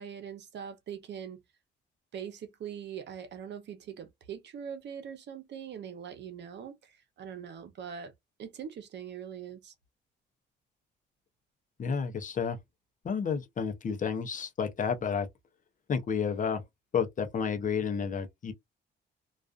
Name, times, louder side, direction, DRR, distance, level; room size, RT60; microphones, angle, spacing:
voice 1, 0.0-1.4 2.1-8.1 8.4-9.7, right 8 dB, 65° right, 0.7 m, -42 dB
voice 2, 11.8-12.6 13.0-15.3 15.9-16.6 16.9-18.5, left 6 dB, 40° left, 0.6 m, -31 dB
2.4 x 2.3 x 2.4 m
cardioid pair, 90°, 20 cm